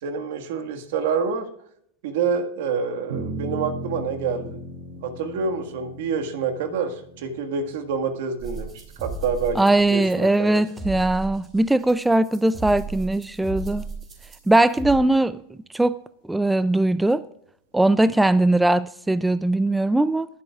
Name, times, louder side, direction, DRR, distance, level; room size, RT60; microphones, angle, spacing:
voice 1, 0.0-1.4 2.0-4.6 5.0-8.7 9.0-9.6 9.9-10.6, right 5 dB, 70° right, 5 dB, 1.7 m, -27 dB
sound 1, 3.1-9.6, right 1 dB, 90° right, 3.0 m, -37 dB
sound 2, 8.4-15.0, right 3 dB, 25° right, 3.4 m, -36 dB
voice 2, 9.6-13.9 14.5-15.4 15.7-15.9 16.3-17.2 17.7-20.3, right 2 dB, 5° right, 15 dB, 0.3 m, -20 dB
20.5 x 7.8 x 2.4 m, 0.70 s
hypercardioid pair, 120°, 0 cm